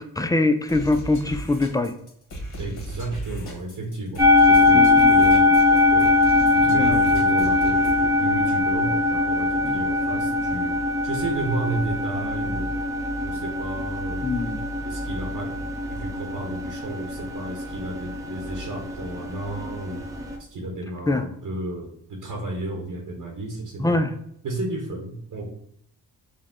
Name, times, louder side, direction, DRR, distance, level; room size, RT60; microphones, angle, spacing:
voice 1, 0.0-1.9 4.7-5.1 6.8-6.9 14.2-14.6 21.1-21.2 23.8-24.1, left 2 dB, 10° left, 9 dB, 0.4 m, -23 dB
sound 1, 0.7-8.1, right 1 dB, 50° left, 1.6 m, -36 dB
voice 2, 2.6-6.1 6.5-12.7 13.2-14.3 14.8-20.1 20.5-24.1 24.4-25.5, right 2 dB, 55° right, 1 dB, 1.0 m, -33 dB
sound 2, 4.2-20.4, left 3 dB, 10° right, 0.9 m, -21 dB
5.1 x 2.2 x 3.6 m, 0.69 s
cardioid pair, 75°, 38 cm